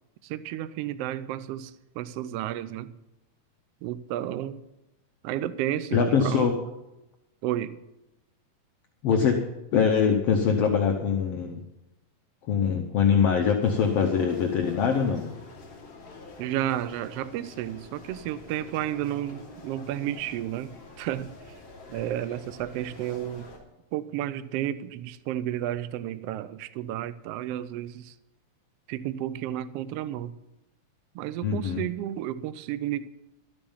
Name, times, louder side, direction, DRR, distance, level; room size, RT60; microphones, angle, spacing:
voice 1, 0.2-2.9 3.8-4.6 5.2-6.6 7.4-7.8 9.1-9.2 16.4-21.3 21.9-23.5 23.9-28.1 28.9-30.3 31.1-33.1, right 12 dB, 85° right, 1.3 m, -32 dB
voice 2, 5.9-6.5 9.0-9.4 9.7-11.6 12.5-15.3 31.4-31.8, left 6 dB, 65° left, 1.7 m, -23 dB
sound 1, 13.6-23.6, left 3 dB, 40° left, 3.6 m, -47 dB
13.0 x 8.9 x 7.2 m
omnidirectional pair, 3.5 m